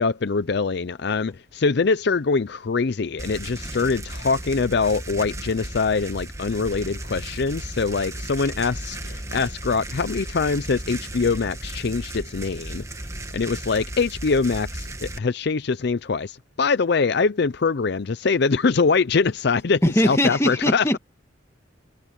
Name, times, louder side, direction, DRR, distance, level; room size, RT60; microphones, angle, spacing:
voice 1, 0.0-12.8 13.3-20.8, left 4 dB, 55° left, 0.5 m, -23 dB
sound 1, 3.2-15.2, right 1 dB, 15° right, 1.5 m, -35 dB
voice 2, 19.8-21.0, left 1 dB, 15° left, 1.6 m, -20 dB
head